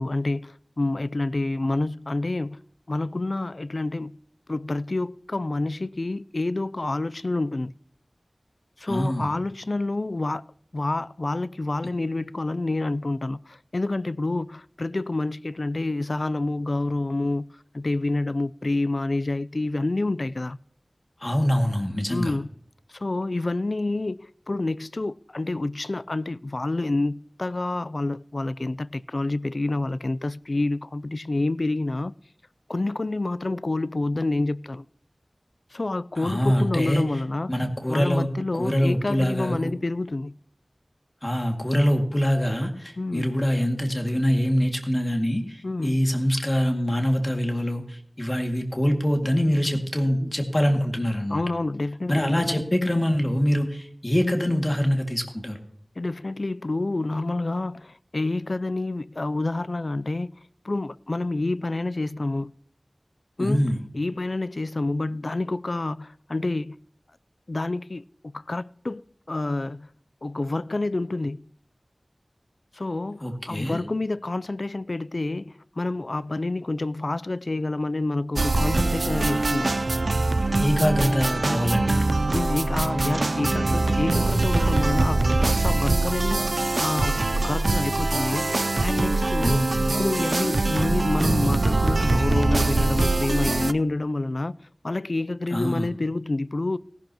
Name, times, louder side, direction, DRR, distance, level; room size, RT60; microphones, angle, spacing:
voice 1, 0.0-2.6 2.9-4.1 4.5-7.7 8.8-10.5 10.7-17.5 17.7-20.6 22.1-22.5 22.9-32.1 32.7-34.8 35.7-37.5 37.9-40.3 43.0-43.3 45.6-46.0 51.3-52.6 56.0-60.3 60.6-62.5 63.4-63.7 63.9-66.8 67.5-68.0 68.3-69.9 70.2-71.4 72.7-79.7 82.3-96.8, left 2 dB, 65° left, 0.4 m, -28 dB
voice 2, 8.9-9.3 21.2-22.3 36.2-37.0 37.5-39.7 41.2-51.4 52.1-55.6 63.4-63.8 73.2-73.8 80.6-82.1 89.4-89.9 95.5-95.9, equal, 30° left, 2.1 m, -24 dB
sound 1, 78.4-93.7, right 2 dB, 75° right, 0.4 m, -23 dB
18.0 x 11.5 x 2.9 m
wide cardioid pair, 50°, 0 cm